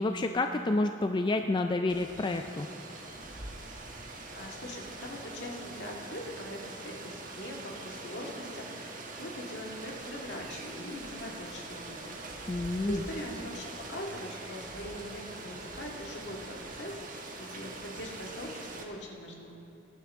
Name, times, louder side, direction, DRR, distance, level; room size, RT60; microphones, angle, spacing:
voice 1, 0.0-2.7 12.5-13.0, left 2 dB, 25° left, 6 dB, 0.3 m, -29 dB
Rain, 1.9-18.8, right 2 dB, 45° right, 1.3 m, -43 dB
voice 2, 3.8-12.6 12.8-19.5, left 1 dB, 65° left, -1 dB, 1.9 m, -42 dB
20.5 x 11.5 x 3.6 m, 2.7 s
head